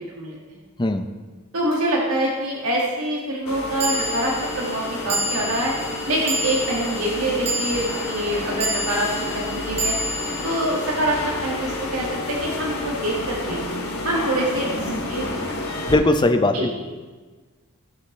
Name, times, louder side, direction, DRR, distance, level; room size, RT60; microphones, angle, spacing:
voice 1, 0.8-1.1 15.9-16.7, left 2 dB, 20° left, 7 dB, 0.6 m, -19 dB
voice 2, 1.5-5.7 6.1-9.9 10.4-13.6 14.0-15.9 16.5-16.7, right 1 dB, 85° right, -3 dB, 1.9 m, -25 dB
sound 1, 1.7-1.8 3.8-12.2, right 1 dB, 25° right, 1.8 m, -30 dB
sound 2, 3.5-15.9, left 2 dB, 80° left, 2.4 m, -30 dB
17.0 x 7.1 x 3.3 m, 1.4 s
head